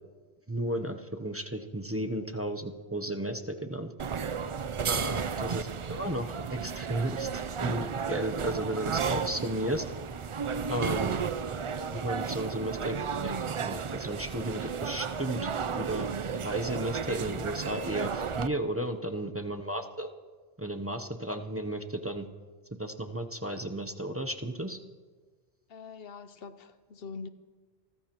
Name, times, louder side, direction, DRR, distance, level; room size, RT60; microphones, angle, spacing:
voice 1, 0.5-3.9 4.9-9.9 10.7-11.2 12.0-16.1 16.4-20.1 20.6-22.3 22.8-24.8, right 1 dB, 15° right, 5 dB, 0.6 m, -34 dB
sound 1, 4.0-18.5, right 6 dB, 60° right, 0.3 m, -33 dB
voice 2, 25.7-27.3, left 5 dB, 60° left, 12 dB, 0.9 m, -44 dB
27.0 x 14.0 x 3.0 m, 1.5 s
omnidirectional pair, 1.2 m